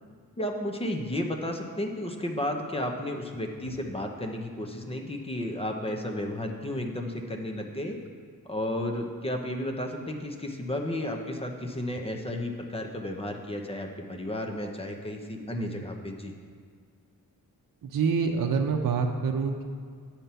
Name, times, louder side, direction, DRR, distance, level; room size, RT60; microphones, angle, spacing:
voice 1, 0.4-8.0 8.5-16.3, left 1 dB, 15° left, 2 dB, 0.7 m, -33 dB
voice 2, 17.8-19.6, right 5 dB, 60° right, 2 dB, 0.7 m, -27 dB
9.1 x 4.4 x 6.9 m, 2.1 s
wide cardioid pair, 160°, 36 cm